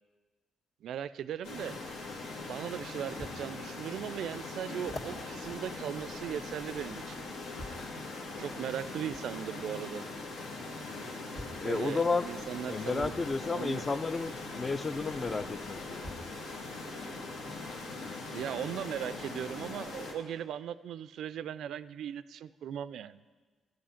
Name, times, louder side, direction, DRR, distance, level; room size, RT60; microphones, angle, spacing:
voice 1, 0.8-1.8 2.5-7.2 8.4-10.0 11.6-13.1 13.5-13.8 18.3-23.2, right 9 dB, 75° right, 16 dB, 0.3 m, -38 dB
sound 1, 1.4-20.1, left 3 dB, 85° left, 1.6 m, -41 dB
sound 2, 3.2-3.4 4.0-4.1 4.8-6.7 7.6-7.9 9.1-9.3 10.5-10.6 11.3-11.7 13.0-13.2 14.9-15.0 16.0-16.4 17.2-17.3, left 1 dB, 60° left, 1.9 m, -46 dB
voice 2, 11.6-12.2 12.7-16.0, left 4 dB, 30° left, 13 dB, 0.4 m, -32 dB
13.0 x 7.6 x 5.7 m, 1.4 s
cardioid pair, 90°, 0 cm